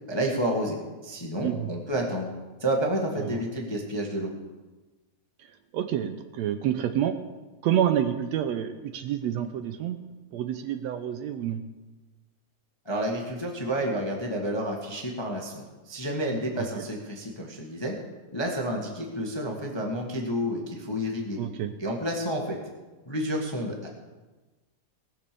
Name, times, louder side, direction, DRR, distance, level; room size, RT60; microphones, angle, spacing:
voice 1, 0.1-2.3 2.6-4.3 12.8-18.0 18.3-21.4 21.8-22.6 23.0-23.9, equal, 15° left, 0 dB, 0.8 m, -30 dB
voice 2, 5.7-7.2 7.6-10.0 10.3-11.6 16.6-16.9 21.4-21.7, right 10 dB, 80° right, 9 dB, 1.7 m, -28 dB
19.0 x 6.9 x 6.8 m, 1.2 s
omnidirectional pair, 3.4 m